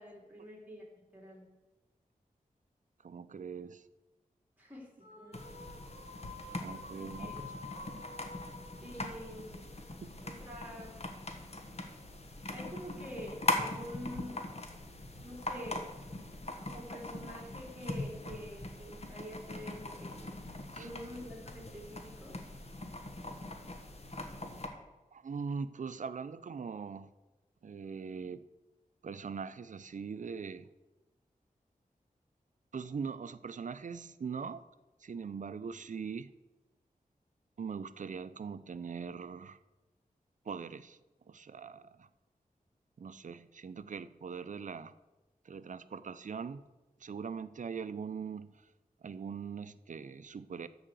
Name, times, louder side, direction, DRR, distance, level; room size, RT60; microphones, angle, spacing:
voice 1, 0.0-1.5 4.6-5.6 7.0-7.4 8.8-9.7 10.2-11.0 12.5-14.4 15.2-15.9 16.6-20.3 20.8-22.4, equal, 10° right, -2 dB, 3.4 m, -47 dB
voice 2, 3.0-3.9 6.5-7.4 10.0-10.1 20.7-20.9 25.1-27.1 27.6-28.4 29.0-30.7 32.7-34.6 35.0-36.3 37.6-39.6 40.4-41.0 41.3-42.1 43.0-45.0 45.4-46.6 47.0-48.7 49.0-50.7, right 6 dB, 60° right, 14 dB, 0.5 m, -41 dB
sound 1, 5.0-10.4, left 3 dB, 75° left, 2.7 m, -50 dB
sound 2, 5.3-24.7, left 2 dB, 45° left, 1.4 m, -41 dB
13.5 x 4.9 x 7.7 m, 1.1 s
wide cardioid pair, 100°, 15 cm